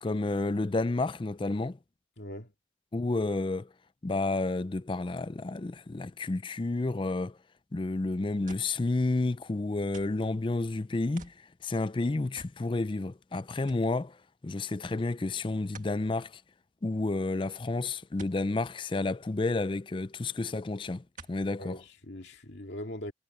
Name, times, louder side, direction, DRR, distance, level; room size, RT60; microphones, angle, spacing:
voice 1, 0.0-1.8 2.9-3.7 4.0-7.4 7.7-11.3 11.6-14.2 14.4-16.4 16.8-21.8, left 2 dB, 30° left, 0.4 m, -30 dB
voice 2, 2.2-2.5 21.6-23.1, left 1 dB, 70° left, 2.2 m, -41 dB
sound 1, 8.5-8.8 9.9-10.3 11.2-11.5 12.4-12.6 13.0-13.1 13.7-13.9 15.7-16.0 18.2-18.4 19.9-20.0 21.2-21.5 22.2-22.3, right 4 dB, 45° right, 1.9 m, -50 dB
head